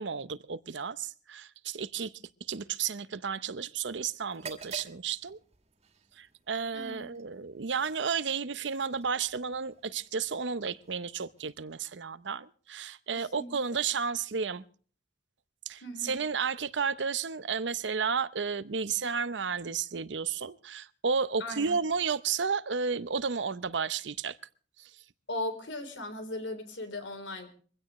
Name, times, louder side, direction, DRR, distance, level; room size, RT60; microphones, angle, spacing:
voice 1, 0.0-2.1 2.5-5.4 6.2-14.6 15.7-24.4 24.8-24.9, right 5 dB, 75° right, 0.7 m, -32 dB
sound 1, 4.3-12.1, right 4 dB, 35° right, 2.1 m, -51 dB
voice 2, 6.7-7.1 13.1-13.8 15.8-16.1 21.4-21.8 25.3-27.5, left 1 dB, 90° left, 3.6 m, -38 dB
23.5 x 16.0 x 3.1 m
head